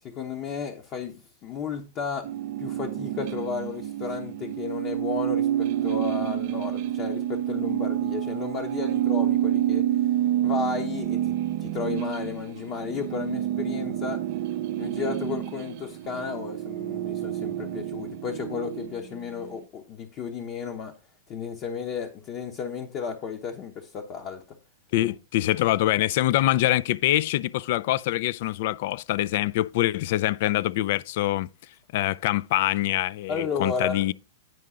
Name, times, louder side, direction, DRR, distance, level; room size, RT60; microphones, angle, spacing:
voice 1, 0.0-2.3 2.6-9.9 10.4-11.3 11.6-14.2 14.8-20.9 21.3-24.6 25.0-25.1 33.3-34.1, left 6 dB, 35° left, 1.0 m, -33 dB
sound 1, 2.2-19.5, right 12 dB, 50° right, 0.4 m, -28 dB
voice 2, 24.9-31.5 31.9-34.1, left 15 dB, 55° left, 0.3 m, -24 dB
9.4 x 5.5 x 3.7 m
figure-of-eight pair, 100°, 0 cm